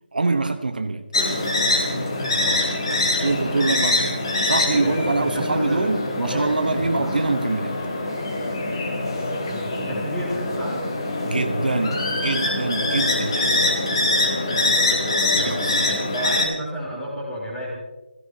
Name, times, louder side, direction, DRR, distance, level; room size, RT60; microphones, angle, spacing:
voice 1, 0.1-1.1 3.2-7.8 11.2-13.5 15.2-15.8, right 3 dB, 55° right, 1.1 m, -24 dB
sound 1, 1.1-16.5, left 2 dB, 30° left, 3.6 m, -24 dB
voice 2, 2.3-2.7 3.1-3.4 4.5-7.2 9.4-10.8 14.5-14.8 15.4-17.7, equal, 5° left, 3.8 m, -32 dB
25.5 x 16.5 x 2.9 m
figure-of-eight pair, 175°, 6 cm